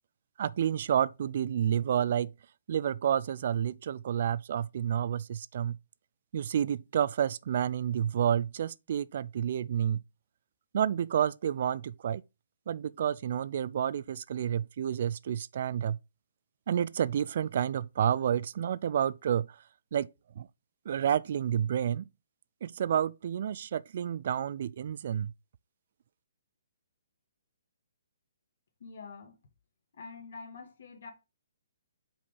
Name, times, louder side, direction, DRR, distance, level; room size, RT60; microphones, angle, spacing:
voice 1, 0.4-2.3 2.7-5.8 6.3-10.0 10.7-12.2 12.7-16.0 16.7-19.6 19.9-20.1 20.4-20.5 20.9-22.0 22.6-25.3, right 9 dB, 55° right, 0.3 m, -30 dB
voice 2, 28.8-29.4 30.0-31.1, left 4 dB, 65° left, 2.0 m, -46 dB
5.5 x 4.2 x 5.2 m
hypercardioid pair, 145°, 0 cm